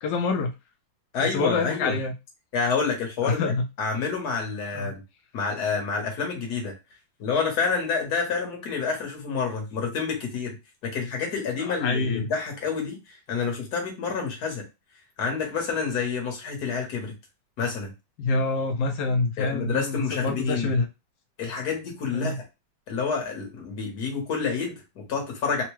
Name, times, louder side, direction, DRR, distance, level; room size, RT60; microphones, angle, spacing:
voice 1, 0.0-0.5 1.2-2.1 3.2-3.6 4.7-4.9 11.6-12.3 18.2-20.9 22.1-22.4, left 3 dB, 75° left, 4 dB, 0.9 m, -26 dB
voice 2, 1.1-2.0 2.5-5.0 5.3-6.7 7.2-10.5 10.8-14.6 15.2-17.1 17.6-17.9 19.4-20.7 21.4-22.4 22.9-25.6, left 5 dB, 55° left, 1 dB, 1.4 m, -28 dB
3.7 x 2.1 x 3.0 m, 0.25 s
omnidirectional pair, 2.2 m